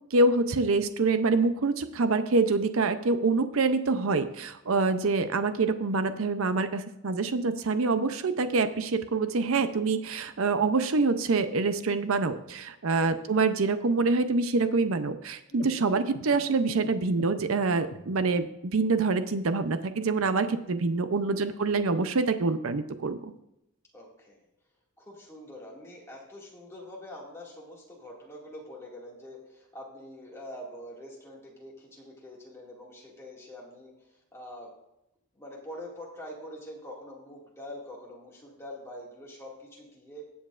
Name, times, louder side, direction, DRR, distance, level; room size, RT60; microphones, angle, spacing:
voice 1, 0.1-23.3, right 3 dB, 65° right, 10 dB, 0.6 m, -26 dB
sound 1, 15.5-18.5, left 2 dB, 70° left, 1.0 m, -44 dB
voice 2, 21.3-21.8 23.9-24.4 25.0-33.9 34.3-34.7 35.4-40.2, left 1 dB, 10° left, -3 dB, 2.1 m, -45 dB
20.5 x 7.0 x 2.5 m, 0.85 s
head